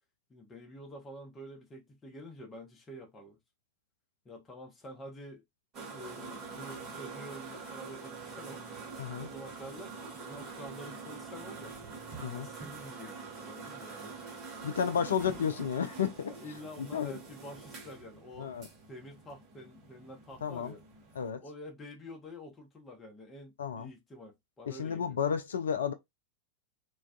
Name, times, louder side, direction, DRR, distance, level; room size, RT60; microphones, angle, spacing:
voice 1, 0.3-3.4 4.2-5.4 5.9-8.7 9.2-11.8 12.4-14.1 14.9-15.4 16.3-18.5 18.9-20.8 21.4-25.2, equal, 15° left, 0.8 m, -48 dB
sound 1, 5.7-21.3, right 4 dB, 35° right, 0.8 m, -45 dB
voice 2, 9.0-9.3 12.2-12.5 14.6-16.3 16.9-17.1 18.4-18.6 20.4-20.7 21.2-21.4 23.6-23.9 24.7-25.9, left 7 dB, 65° left, 0.3 m, -32 dB
2.2 x 2.2 x 2.4 m
figure-of-eight pair, 90°, 0 cm